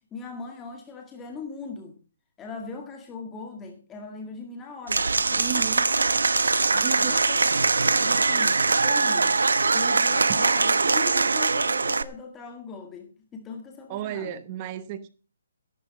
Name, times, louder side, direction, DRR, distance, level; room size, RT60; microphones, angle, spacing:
voice 1, 0.1-2.0 2.4-6.2 6.6-7.5 7.7-9.4 9.7-14.4, left 4 dB, 15° left, 1.9 m, -40 dB
Applause / Crowd, 4.9-12.0, right 4 dB, 90° right, 1.2 m, -22 dB
voice 2, 5.4-5.8 6.8-7.1 10.4-10.5 13.9-15.1, right 11 dB, 30° right, 1.1 m, -33 dB
18.0 x 11.0 x 4.3 m
hypercardioid pair, 155°, 0 cm